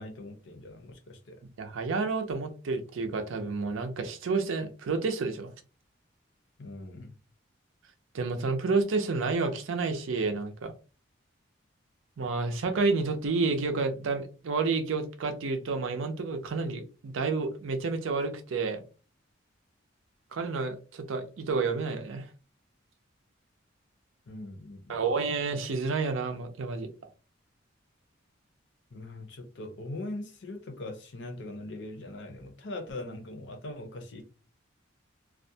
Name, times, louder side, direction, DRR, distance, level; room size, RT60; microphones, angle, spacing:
voice 1, 0.0-1.4 6.6-7.1 24.3-25.0 28.9-34.2, left 2 dB, 60° left, 0.6 m, -41 dB
voice 2, 1.6-5.5 8.1-10.7 12.2-18.8 20.3-22.3 24.9-26.9, right 4 dB, 80° right, 0.5 m, -30 dB
2.4 x 2.1 x 2.6 m
head